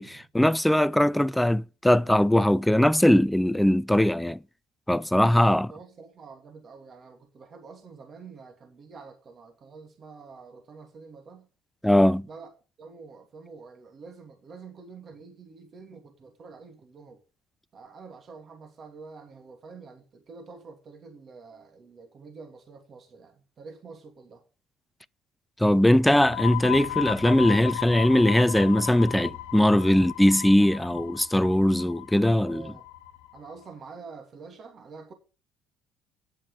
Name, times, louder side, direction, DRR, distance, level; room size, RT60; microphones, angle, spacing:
voice 1, 0.0-4.4 4.9-5.7 11.8-12.3 25.6-32.6, left 1 dB, 5° left, 0.5 m, -21 dB
voice 2, 5.7-11.5 12.2-12.5 12.8-17.2 17.7-24.4 32.4-32.8 33.3-35.1, right 4 dB, 45° right, 2.6 m, -47 dB
sound 1, 26.1-33.5, left 14 dB, 90° left, 1.3 m, -36 dB
9.3 x 7.4 x 6.6 m
supercardioid pair, 70°, 0 cm